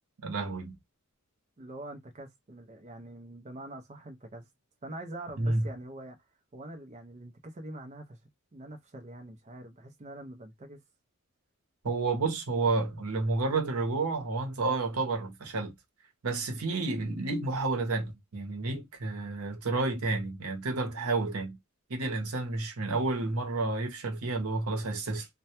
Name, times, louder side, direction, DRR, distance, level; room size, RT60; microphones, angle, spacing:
voice 1, 0.2-0.8 5.4-5.7 11.8-15.7 16.2-21.6 21.9-25.3, right 3 dB, 85° right, 0.7 m, -30 dB
voice 2, 1.6-4.5 4.8-6.2 6.5-8.2 8.5-10.8, right 1 dB, 30° right, 0.4 m, -44 dB
2.1 x 2.1 x 2.7 m
head